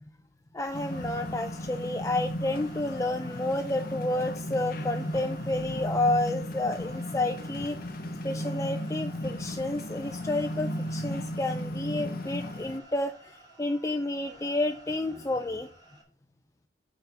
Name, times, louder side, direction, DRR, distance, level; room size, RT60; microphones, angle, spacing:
voice 1, 0.5-7.9 8.2-15.7, left 2 dB, 15° left, 6 dB, 0.4 m, -30 dB
sound 1, 0.6-16.0, right 1 dB, 20° right, 2.8 m, -53 dB
sound 2, 0.7-12.8, equal, 50° left, 0.7 m, -35 dB
7.3 x 5.6 x 5.7 m, 0.42 s
head